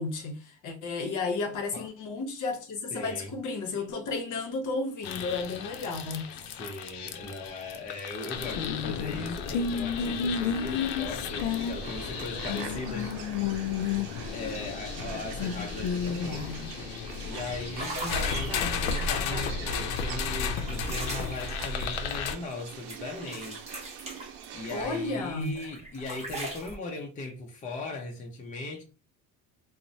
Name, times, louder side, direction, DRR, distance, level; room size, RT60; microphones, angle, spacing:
voice 1, 0.0-6.4 24.7-25.5, left 3 dB, 55° left, 0.8 m, -33 dB
voice 2, 2.9-3.3 6.5-13.7 14.3-17.0 17.2-23.6 24.5-28.8, left 2 dB, 20° left, 0.5 m, -39 dB
sound 1, 5.0-22.3, left 6 dB, 85° left, 0.5 m, -32 dB
sound 2, 11.3-25.1, right 8 dB, 75° right, 0.6 m, -44 dB
sound 3, 15.7-15.8 16.2-16.5 17.1-17.2 17.7-19.3 19.9-22.6 22.9-25.0 25.4-26.8, right 1 dB, 15° right, 0.8 m, -40 dB
2.9 x 2.0 x 2.6 m
cardioid pair, 120°, 38 cm